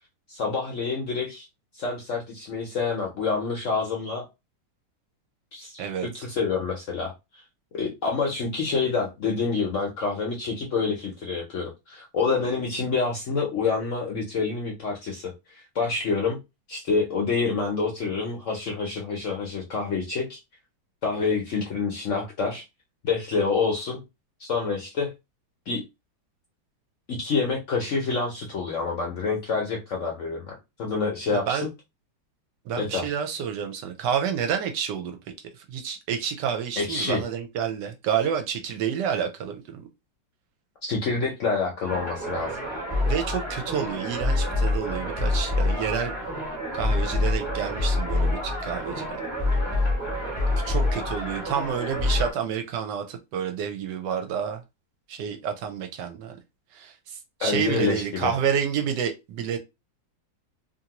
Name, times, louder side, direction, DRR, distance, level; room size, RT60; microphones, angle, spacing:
voice 1, 0.3-1.4 1.7-4.2 5.5-7.1 7.7-16.4 16.7-20.4 21.0-22.6 23.0-24.0 24.4-25.1 25.7-25.8 27.1-30.5 30.8-31.7 32.8-33.0 36.8-37.2 40.8-42.6 57.4-58.3, left 4 dB, 60° left, 0.8 m, -27 dB
voice 2, 5.8-6.3 31.3-31.7 32.7-35.2 35.6-39.9 43.1-46.2 46.7-49.2 50.6-54.6 55.1-56.4 56.7-59.6, right 8 dB, 75° right, 1.2 m, -29 dB
sound 1, 41.9-52.3, left 2 dB, 20° right, 0.9 m, -26 dB
2.8 x 2.6 x 2.9 m
omnidirectional pair, 2.0 m